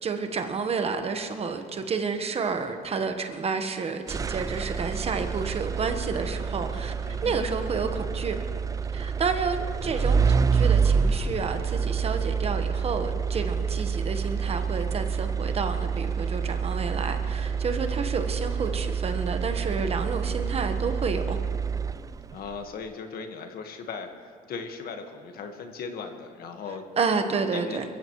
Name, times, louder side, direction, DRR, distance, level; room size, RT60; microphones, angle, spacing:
voice 1, 0.0-6.9 7.2-8.4 8.9-21.4 27.0-27.8, right 5 dB, 35° right, 7 dB, 1.2 m, -30 dB
sound 1, 4.1-22.3, right 6 dB, 20° right, 0.4 m, -28 dB
voice 2, 7.0-7.5 22.3-26.8 27.5-27.8, left 5 dB, 60° left, 5 dB, 1.6 m, -38 dB
23.5 x 14.5 x 3.1 m, 2.1 s
cardioid pair, 110°, 17 cm